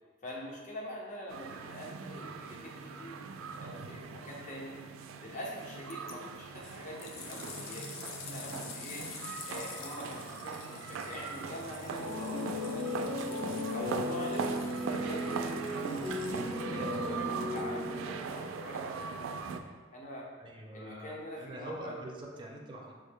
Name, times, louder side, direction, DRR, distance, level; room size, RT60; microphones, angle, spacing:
voice 1, 0.2-3.2 3.5-4.8 5.2-9.0 9.5-13.1 13.6-16.2 16.7-19.2 19.4-20.3 20.7-21.9, left 1 dB, 40° left, -3 dB, 0.7 m, -44 dB
sound 1, 1.3-19.6, right 5 dB, 85° right, 0.3 m, -41 dB
sound 2, 5.9-6.1 6.6-16.8 17.6-17.7, left 6 dB, 85° left, 0.5 m, -48 dB
voice 2, 8.2-8.7 20.4-22.9, right 1 dB, 25° right, -1 dB, 0.6 m, -45 dB
sound 3, 11.9-18.3, left 1 dB, 60° left, 1.3 m, -36 dB
5.7 x 2.1 x 3.5 m, 1.4 s
head